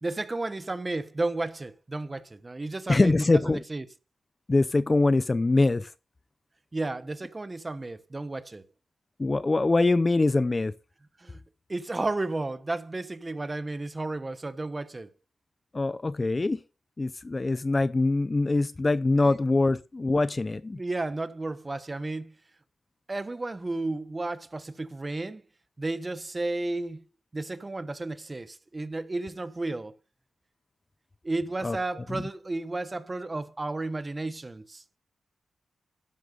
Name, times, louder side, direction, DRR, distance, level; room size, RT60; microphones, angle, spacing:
voice 1, 0.0-3.8 6.7-8.6 11.2-11.4 11.7-15.1 19.2-19.4 20.7-22.4 23.1-25.4 25.8-27.0 27.3-30.0 31.2-34.8, right 2 dB, 25° right, 1.1 m, -33 dB
voice 2, 2.9-3.6 4.5-5.9 9.2-10.7 15.7-16.6 17.0-20.8 31.6-31.8 32.1-32.2, left 2 dB, 25° left, 0.6 m, -23 dB
12.5 x 10.5 x 4.0 m
wide cardioid pair, 100°, 0 cm